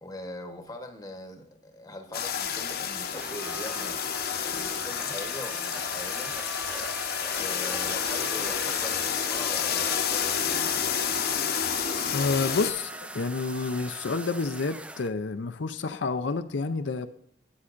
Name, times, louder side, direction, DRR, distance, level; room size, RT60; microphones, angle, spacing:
voice 1, 0.0-6.3 7.3-10.9, left 1 dB, 20° left, 1.1 m, -42 dB
sound 1, 2.1-12.7, left 8 dB, 55° left, 0.9 m, -30 dB
sound 2, 3.1-15.1, right 2 dB, 5° right, 0.3 m, -40 dB
voice 2, 12.1-17.1, left 4 dB, 80° left, 0.6 m, -29 dB
13.0 x 9.7 x 2.5 m
head